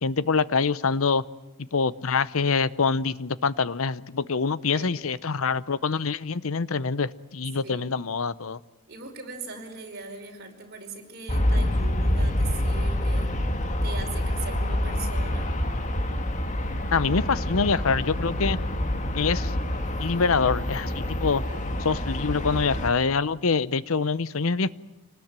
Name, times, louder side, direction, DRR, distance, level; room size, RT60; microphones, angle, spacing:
voice 1, 0.0-1.2 1.6-8.6 16.9-18.6 19.1-19.5 20.0-21.4 21.8-24.7, left 5 dB, 75° left, 18 dB, 0.8 m, -25 dB
voice 2, 8.9-13.3 13.8-15.5 21.5-21.6, right 4 dB, 50° right, 1 dB, 5.3 m, -40 dB
Aircraft, 11.3-22.9, left 1 dB, 35° left, 1.9 m, -27 dB
27.0 x 19.5 x 9.0 m, 1.0 s
head